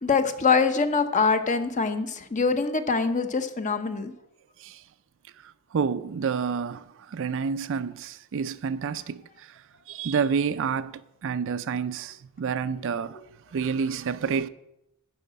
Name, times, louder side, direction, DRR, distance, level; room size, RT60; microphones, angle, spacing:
voice 1, 0.0-4.1 14.2-14.4, left 4 dB, 35° left, 0.8 m, -24 dB
voice 2, 5.4-13.2 13.5-14.5, right 6 dB, 60° right, 0.4 m, -29 dB
11.0 x 4.9 x 7.6 m
head